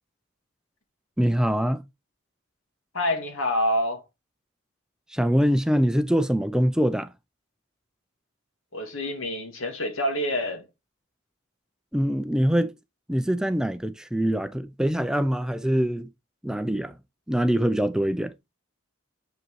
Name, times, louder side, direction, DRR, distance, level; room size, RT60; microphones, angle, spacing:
voice 1, 1.2-1.8 5.1-7.1 11.9-12.7 13.1-16.1 16.4-17.0 17.3-18.3, equal, 5° right, 0.4 m, -24 dB
voice 2, 2.9-4.0 8.7-10.6, left 1 dB, 80° left, 1.9 m, -27 dB
7.4 x 5.4 x 3.0 m
head